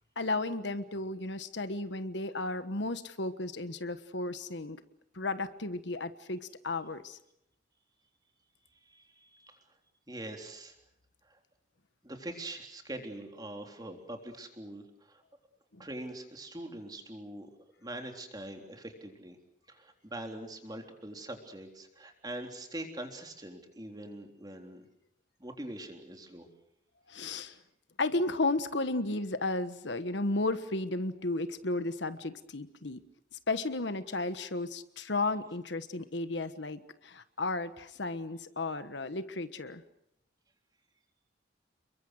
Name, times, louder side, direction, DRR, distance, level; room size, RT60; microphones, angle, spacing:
voice 1, 0.2-4.8 5.1-7.2 15.7-15.9 27.1-27.6 28.0-33.0 33.3-39.8, left 2 dB, 70° left, 11 dB, 1.3 m, -34 dB
voice 2, 8.8-9.6 10.1-10.7 11.2-11.4 12.0-15.2 15.8-17.5 17.8-19.4 19.7-24.9 25.4-26.5, right 1 dB, 20° right, 3 dB, 3.6 m, -43 dB
29.5 x 22.5 x 6.5 m, 0.78 s
head